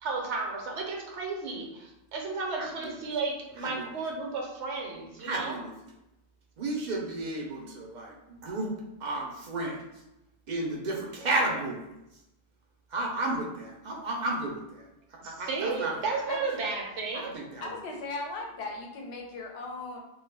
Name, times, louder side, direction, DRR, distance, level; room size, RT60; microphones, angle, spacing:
voice 1, 0.0-5.6 15.2-17.3, right 4 dB, 75° right, 0 dB, 0.9 m, -33 dB
voice 2, 5.2-5.7 6.6-8.7 9.0-9.9 10.5-12.0 12.9-14.9 15.2-16.2 17.2-17.7, right 2 dB, 60° right, -2 dB, 0.5 m, -32 dB
voice 3, 17.6-20.0, left 3 dB, 70° left, 1 dB, 0.8 m, -37 dB
2.3 x 2.1 x 3.2 m, 0.91 s
omnidirectional pair, 1.2 m